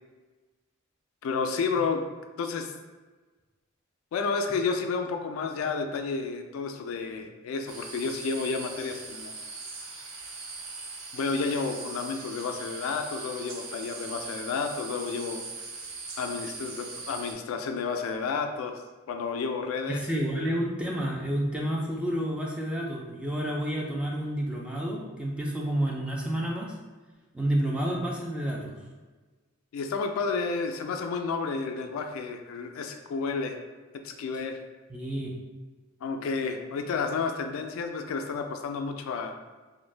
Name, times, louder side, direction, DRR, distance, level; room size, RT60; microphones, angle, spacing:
voice 1, 1.2-2.0 2.4-2.7 4.1-9.3 11.1-15.4 16.2-18.8 19.1-20.0 29.7-33.6 34.0-34.6 36.0-39.3, left 4 dB, 75° left, 6 dB, 0.3 m, -31 dB
sound 1, 7.7-17.3, right 4 dB, 70° right, 0.5 m, -40 dB
voice 2, 19.9-26.7 27.3-28.7 34.9-35.3, right 1 dB, 5° right, -2 dB, 0.3 m, -30 dB
2.5 x 2.1 x 3.1 m, 1.3 s
head